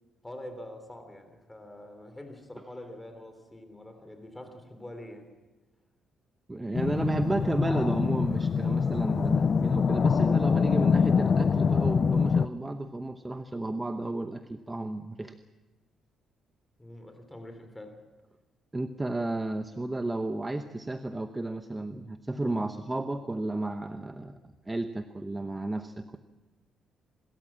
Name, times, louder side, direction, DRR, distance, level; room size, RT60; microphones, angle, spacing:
voice 1, 0.2-5.3 16.8-18.0, left 1 dB, 10° left, 3.4 m, -45 dB
voice 2, 6.5-15.4 18.7-26.2, right 2 dB, 15° right, 0.9 m, -32 dB
sound 1, 6.7-12.5, left 6 dB, 45° left, 0.5 m, -24 dB
25.5 x 13.5 x 7.5 m
cardioid pair, 90°, 0 cm